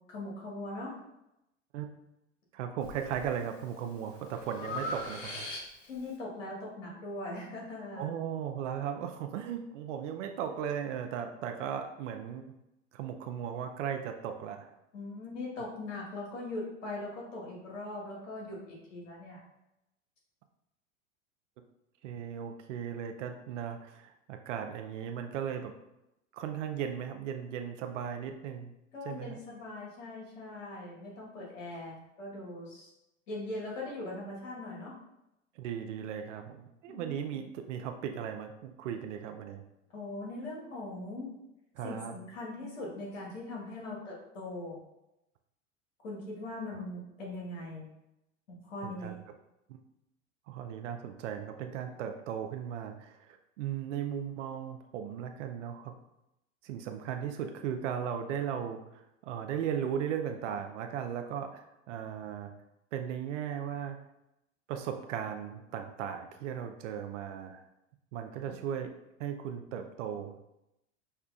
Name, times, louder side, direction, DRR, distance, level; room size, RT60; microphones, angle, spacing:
voice 1, 0.1-1.0 5.8-8.1 14.9-19.4 28.9-32.9 33.3-35.0 36.9-37.2 39.9-41.3 41.8-44.8 46.0-47.9 48.5-49.2, left 2 dB, 80° left, -3 dB, 1.4 m, -40 dB
voice 2, 2.5-5.5 8.0-12.5 12.9-14.7 22.0-25.7 26.3-28.7 29.1-29.4 35.6-39.6 41.8-42.1 48.8-49.2 49.7-49.8 50.5-55.9 56.6-62.5 62.9-64.0 64.7-67.6 68.1-68.9 69.2-70.4, right 8 dB, 75° right, 6 dB, 0.5 m, -37 dB
Breathing, 2.8-3.3 3.8-6.0, left 1 dB, 35° left, 0.9 m, -40 dB
5.4 x 2.2 x 2.4 m, 0.87 s
hypercardioid pair, 100°, 37 cm